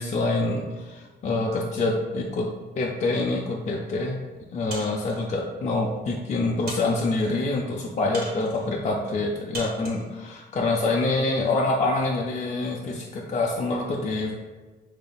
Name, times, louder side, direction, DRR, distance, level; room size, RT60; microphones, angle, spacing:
voice 1, 0.0-2.5 2.8-4.2 4.5-14.4, left 2 dB, 35° left, -1 dB, 0.4 m, -26 dB
sound 1, 4.7-5.3 6.0-6.1 6.7-7.3 8.1-8.7 9.5-10.1, right 2 dB, 50° right, 1.4 m, -38 dB
5.1 x 2.8 x 2.3 m, 1.3 s
cardioid pair, 90°, 20 cm